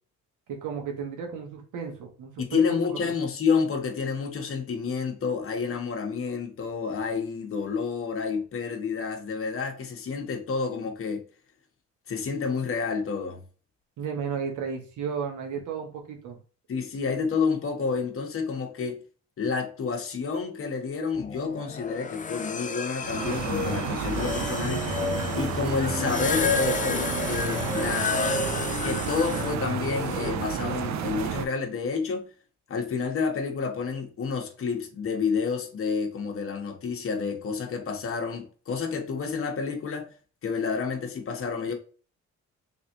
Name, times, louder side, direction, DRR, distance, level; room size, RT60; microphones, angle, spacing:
voice 1, 0.5-2.6 3.0-3.1 14.0-16.4, right 6 dB, 80° right, 1.3 m, -33 dB
voice 2, 2.4-11.2 12.1-13.4 16.7-19.0 19.4-24.8 25.4-28.2 28.8-32.3 32.7-40.1 40.4-41.7, left 5 dB, 45° left, 1.1 m, -29 dB
sound 1, 21.1-30.3, left 4 dB, 25° left, 0.5 m, -30 dB
sound 2, 23.0-31.5, right 9 dB, 65° right, 0.6 m, -31 dB
3.5 x 3.2 x 2.9 m
cardioid pair, 90°, 30 cm